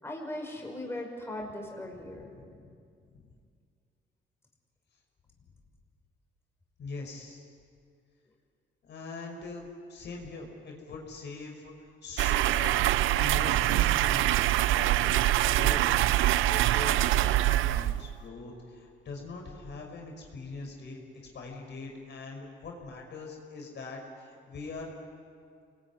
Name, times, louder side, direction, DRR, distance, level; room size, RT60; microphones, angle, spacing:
voice 1, 0.0-2.3, left 1 dB, 10° left, 0 dB, 5.6 m, -38 dB
voice 2, 2.2-2.7 3.1-3.2 6.8-7.5 8.9-12.8 13.2-16.1 16.5-21.0 21.3-24.9, left 3 dB, 60° left, 1 dB, 5.3 m, -42 dB
sound 1, 12.2-18.2, right 14 dB, 85° right, 0.6 m, -24 dB
27.5 x 21.5 x 9.8 m, 2.3 s
cardioid pair, 90°, 20 cm